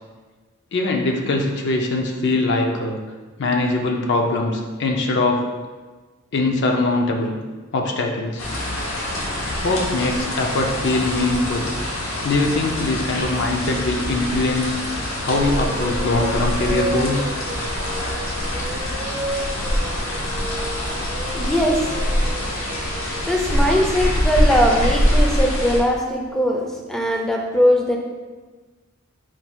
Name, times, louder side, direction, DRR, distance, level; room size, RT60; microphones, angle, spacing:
voice 1, 0.7-3.0 3.4-5.4 6.3-7.4 7.7-8.5 9.6-11.7 12.2-14.8 15.2-17.3, left 2 dB, 60° left, 2 dB, 0.5 m, -22 dB
sound 1, 8.4-25.8, equal, 80° left, 0.8 m, -24 dB
sound 2, 15.2-23.4, right 1 dB, 40° right, 0.6 m, -33 dB
voice 2, 21.3-21.9 23.3-28.0, equal, ahead, 0 dB, 0.4 m, -20 dB
4.4 x 2.3 x 4.2 m, 1.3 s
head